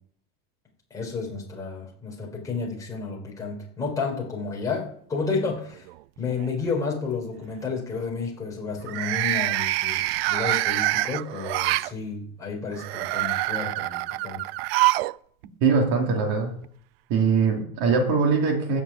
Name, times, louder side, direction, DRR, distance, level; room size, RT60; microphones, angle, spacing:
voice 1, 0.9-5.9 6.2-14.4, left 4 dB, 10° left, -2 dB, 4.3 m, -31 dB
sound 1, 5.3-5.9 6.3-6.7 8.8-11.9 12.7-15.2 15.4-15.5 16.6-16.7, right 18 dB, 90° right, 0.5 m, -26 dB
voice 2, 15.6-16.5 17.1-18.8, right 5 dB, 50° right, 0 dB, 2.9 m, -22 dB
14.0 x 5.8 x 9.0 m, 0.63 s
cardioid pair, 175°, 29 cm